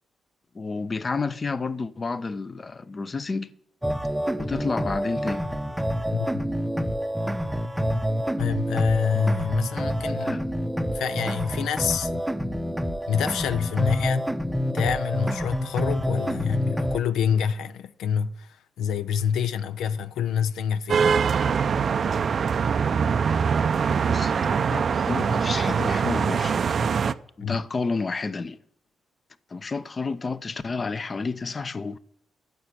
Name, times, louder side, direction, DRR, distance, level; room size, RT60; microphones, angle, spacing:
voice 1, 0.5-3.5 4.4-5.4 10.2-10.4 23.9-26.7 27.4-28.6 29.5-32.0, left 4 dB, 40° left, 0.6 m, -30 dB
sound 1, 3.8-17.0, equal, 5° right, 0.7 m, -27 dB
voice 2, 6.1-6.5 8.4-10.4 10.9-12.1 13.1-14.3 14.7-21.1 27.4-27.6, left 8 dB, 85° left, 0.5 m, -27 dB
sound 2, 20.9-27.1, right 6 dB, 55° right, 0.5 m, -23 dB
9.4 x 6.9 x 7.4 m
cardioid pair, 70°, 0 cm